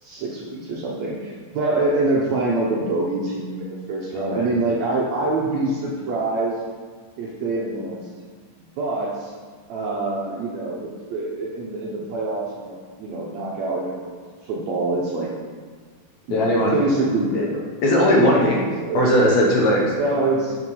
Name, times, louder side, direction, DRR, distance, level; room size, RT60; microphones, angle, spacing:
voice 1, 0.0-6.6 7.2-8.1 8.8-9.3 9.7-14.2 14.4-15.3 16.3-17.7 18.2-18.5 18.8-19.0 20.0-20.6, right 2 dB, 75° right, -3 dB, 1.7 m, -25 dB
voice 2, 4.1-4.5 16.3-16.8 17.3-17.5 17.8-18.6 18.9-19.9, equal, 70° left, -2 dB, 1.9 m, -18 dB
6.7 x 4.8 x 5.3 m, 1.5 s
omnidirectional pair, 3.9 m